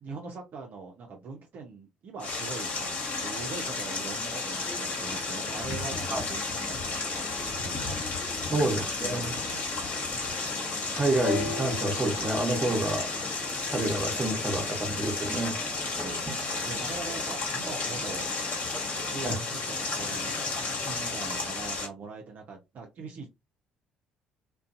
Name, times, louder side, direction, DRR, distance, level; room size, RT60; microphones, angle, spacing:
voice 1, 0.0-8.1 8.5-10.2 16.0-18.3 19.1-23.3, right 4 dB, 50° right, 0.6 m, -42 dB
sound 1, 2.2-21.9, left 3 dB, 50° left, 1.1 m, -33 dB
sound 2, 4.3-19.3, left 1 dB, 25° left, 0.9 m, -45 dB
voice 2, 8.5-9.3 10.9-13.1 13.7-15.6 19.2-19.4, right 2 dB, 20° right, 1.0 m, -28 dB
sound 3, 11.2-15.1 16.0-16.1, left 5 dB, 85° left, 0.7 m, -39 dB
2.5 x 2.3 x 2.5 m
hypercardioid pair, 55°, 4 cm